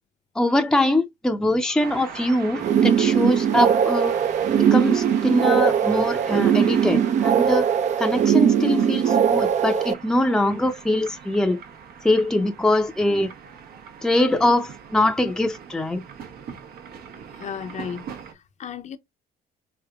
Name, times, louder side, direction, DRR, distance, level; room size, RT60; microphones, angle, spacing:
voice 1, 0.4-4.2 4.6-7.7 8.0-11.6 12.0-13.3 14.0-16.0, left 1 dB, 5° left, 0.6 m, -22 dB
sound 1, 1.8-18.3, right 7 dB, 70° right, 1.0 m, -40 dB
sound 2, 2.6-9.9, right 8 dB, 45° right, 0.5 m, -20 dB
voice 2, 17.3-18.1 18.3-19.0, left 7 dB, 45° left, 0.6 m, -34 dB
3.9 x 3.4 x 2.3 m
cardioid pair, 110°, 17 cm